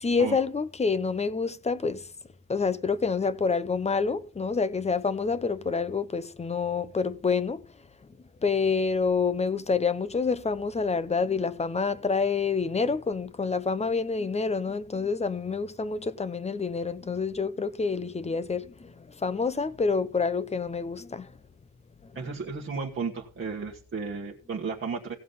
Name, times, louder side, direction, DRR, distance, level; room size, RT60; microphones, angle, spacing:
voice 1, 0.0-2.1 2.5-7.6 8.4-18.9 19.2-21.3, left 4 dB, 20° left, 0.6 m, -27 dB
voice 2, 22.1-25.1, right 5 dB, 35° right, 1.4 m, -33 dB
16.5 x 7.3 x 4.0 m
wide cardioid pair, 155°, 34 cm